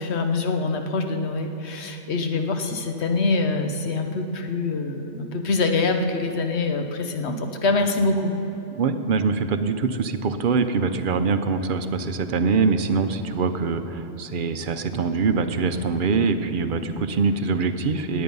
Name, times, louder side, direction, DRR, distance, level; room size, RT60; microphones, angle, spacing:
voice 1, 0.0-8.3, left 3 dB, 70° left, 5 dB, 1.2 m, -24 dB
voice 2, 8.8-18.2, right 4 dB, 50° right, 9 dB, 0.8 m, -23 dB
18.5 x 8.6 x 5.4 m, 2.9 s
omnidirectional pair, 1.2 m